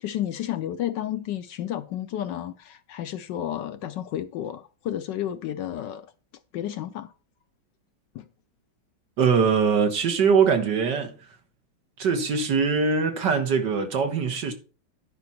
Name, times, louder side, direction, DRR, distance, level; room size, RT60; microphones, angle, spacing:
voice 1, 0.0-6.1 6.5-7.1 8.1-8.2, left 11 dB, 70° left, 1.1 m, -31 dB
voice 2, 9.2-11.1 12.0-14.5, right 5 dB, 60° right, 1.9 m, -22 dB
10.5 x 5.0 x 5.8 m
omnidirectional pair, 2.2 m